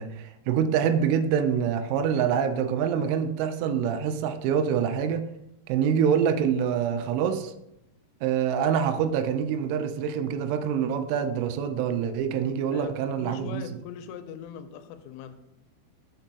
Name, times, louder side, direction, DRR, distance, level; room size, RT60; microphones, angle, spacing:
voice 1, 0.0-5.2 5.7-7.5 8.2-13.6, right 8 dB, 90° right, 8 dB, 3.1 m, -25 dB
voice 2, 12.7-15.4, left 8 dB, 90° left, 9 dB, 3.1 m, -41 dB
6.4 x 4.5 x 3.9 m, 0.85 s
omnidirectional pair, 5.5 m